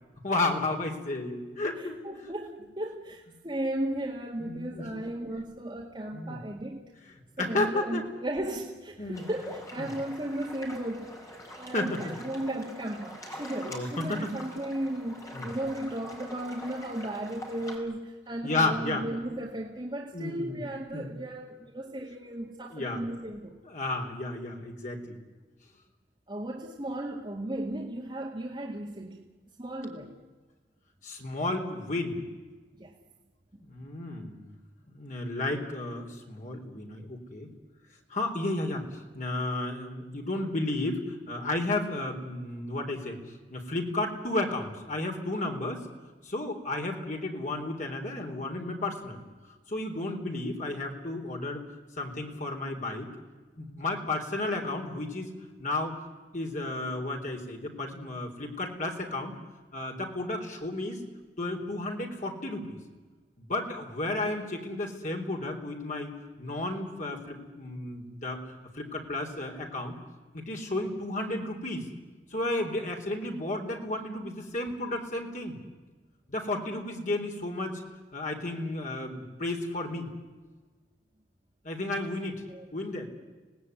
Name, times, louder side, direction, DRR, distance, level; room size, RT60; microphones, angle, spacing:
voice 1, 0.2-2.0 2.2-2.3 4.4-5.0 6.1-6.4 7.4-8.0 9.0-9.3 9.8-10.0 11.7-12.1 13.7-14.3 15.3-15.5 18.4-19.0 20.1-20.6 20.9-21.1 22.7-23.0 23.7-25.1 31.0-32.2 33.6-34.6 34.9-37.5 38.1-43.2 43.5-45.9 46.2-49.2 49.7-51.6 52.0-53.1 53.6-56.0 56.3-59.4 59.7-61.0 61.4-62.8 63.4-70.0 70.3-71.9 72.3-75.6 76.3-77.8 78.1-80.1 81.6-83.1, left 2 dB, 45° left, 2 dB, 3.9 m, -33 dB
voice 2, 1.8-6.9 7.4-11.2 11.6-23.5 26.3-29.2 29.6-30.2 32.8-32.9 82.5-82.7, right 1 dB, 25° right, -1 dB, 2.1 m, -35 dB
sound 1, 9.1-17.8, equal, 20° left, 4.8 m, -44 dB
26.0 x 18.5 x 9.6 m, 1.3 s
head